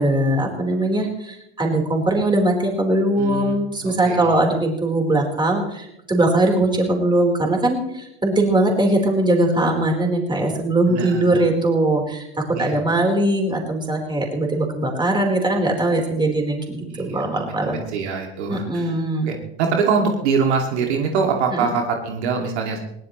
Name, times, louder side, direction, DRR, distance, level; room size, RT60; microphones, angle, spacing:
voice 1, 0.0-17.8 18.5-19.3 21.5-21.7, right 1 dB, 15° right, 1 dB, 4.2 m, -20 dB
voice 2, 3.2-3.6 3.8-4.2 10.9-11.4 12.5-12.8 16.9-19.0 19.2-22.8, right 5 dB, 75° right, 2 dB, 2.5 m, -24 dB
21.0 x 17.5 x 3.2 m, 0.84 s
hypercardioid pair, 95°, 34 cm